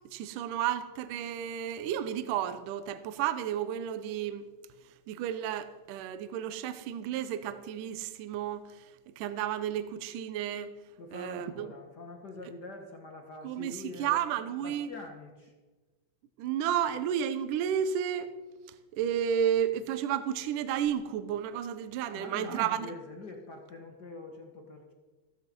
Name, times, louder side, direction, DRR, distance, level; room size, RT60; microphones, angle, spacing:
voice 1, 0.1-4.4 5.1-8.7 9.2-10.7 11.1-11.7 13.4-14.9 16.4-18.3 18.9-22.9, right 9 dB, 70° right, 12 dB, 2.2 m, -32 dB
voice 2, 11.0-14.3 14.6-15.5 22.0-24.9, left 2 dB, 55° left, 2 dB, 1.1 m, -45 dB
15.5 x 13.5 x 5.3 m, 1.3 s
omnidirectional pair, 4.2 m